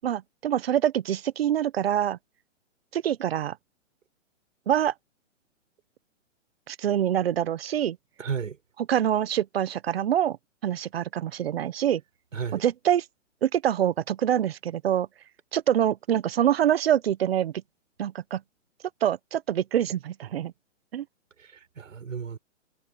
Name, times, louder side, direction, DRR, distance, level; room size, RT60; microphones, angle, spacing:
voice 1, 0.0-2.2 2.9-3.6 4.7-4.9 6.7-8.0 8.9-10.4 10.6-12.0 12.5-13.0 13.4-15.1 15.5-17.5 18.0-18.4 19.0-20.5 20.9-21.0, right 10 dB, 50° right, 1.0 m, -25 dB
voice 2, 8.2-8.6 12.3-12.6 21.4-22.4, right 6 dB, 90° right, 7.2 m, -33 dB
hypercardioid pair, 165°, 38 cm